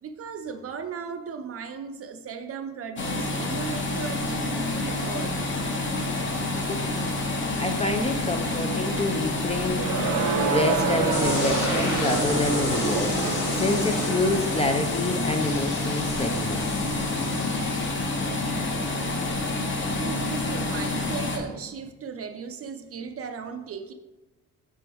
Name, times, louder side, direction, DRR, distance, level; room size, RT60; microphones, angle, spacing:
voice 1, 0.0-5.4 20.0-23.9, right 6 dB, 45° right, 0.5 m, -36 dB
sound 1, 3.0-21.4, left 2 dB, 35° left, 0.9 m, -28 dB
voice 2, 6.4-6.9 7.6-9.9 10.2-13.2 13.5-16.7, left 2 dB, 20° left, 0.4 m, -27 dB
Crowd, 9.7-14.7, right 6 dB, 90° right, 0.6 m, -29 dB
sound 2, 11.1-17.9, left 3 dB, 70° left, 1.3 m, -33 dB
6.1 x 3.4 x 4.5 m
wide cardioid pair, 150°, 32 cm